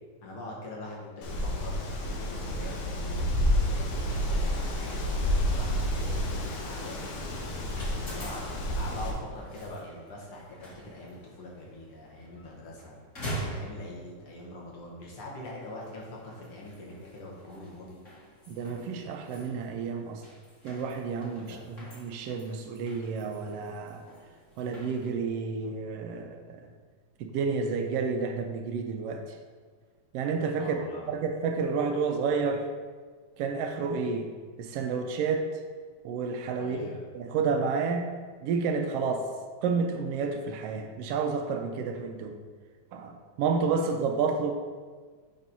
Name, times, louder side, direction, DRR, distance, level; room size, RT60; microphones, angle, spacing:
voice 1, 0.2-1.9 2.2-3.4 3.7-7.2 8.1-13.0 13.5-18.0 21.4-21.7 30.6-31.2 36.6-37.0, left 1 dB, 55° left, -3 dB, 2.0 m, -43 dB
Wind, 1.2-9.1, equal, 90° left, 2.5 m, -29 dB
sound 1, 6.4-25.1, right 1 dB, 35° left, 1.5 m, -45 dB
voice 2, 18.5-20.2 20.6-24.0 24.6-26.6 27.2-29.2 30.1-32.7 33.4-34.3 34.6-35.5 36.0-36.8 37.1-38.1 38.4-39.3 39.6-42.4 42.9-44.5, right 5 dB, 90° right, 4 dB, 1.3 m, -30 dB
7.5 x 5.2 x 4.1 m, 1.5 s
omnidirectional pair, 3.4 m